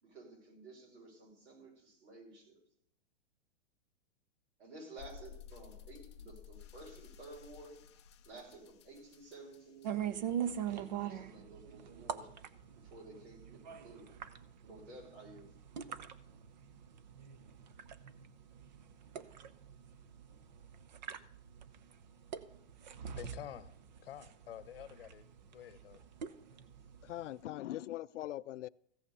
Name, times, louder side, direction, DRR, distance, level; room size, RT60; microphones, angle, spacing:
voice 1, 0.0-2.6 4.6-7.9 8.3-12.3 12.8-14.1 14.6-15.5, right 2 dB, 75° right, 5.7 m, -53 dB
sound 1, 5.0-11.1, left 8 dB, 25° left, 0.5 m, -55 dB
sound 2, 9.8-27.4, right 9 dB, 40° right, 0.6 m, -43 dB
voice 2, 23.1-23.7 24.0-25.2 25.5-26.1, left 11 dB, 50° left, 0.9 m, -49 dB
voice 3, 27.0-28.7, left 14 dB, 85° left, 0.5 m, -41 dB
15.5 x 5.9 x 6.8 m
hypercardioid pair, 170°, 35 cm